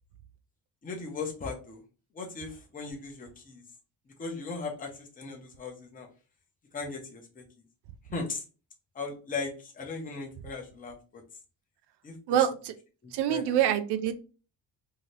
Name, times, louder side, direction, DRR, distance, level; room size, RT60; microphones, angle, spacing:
voice 1, 0.8-1.8 2.1-3.6 4.2-6.1 6.7-7.4 8.1-8.4 8.9-11.2 12.0-12.1 13.0-13.6, left 4 dB, 20° left, 1 dB, 0.7 m, -38 dB
voice 2, 12.3-12.7 13.1-14.1, right 10 dB, 70° right, 10 dB, 0.5 m, -25 dB
2.8 x 2.7 x 3.1 m, 0.35 s
cardioid pair, 170°, 42 cm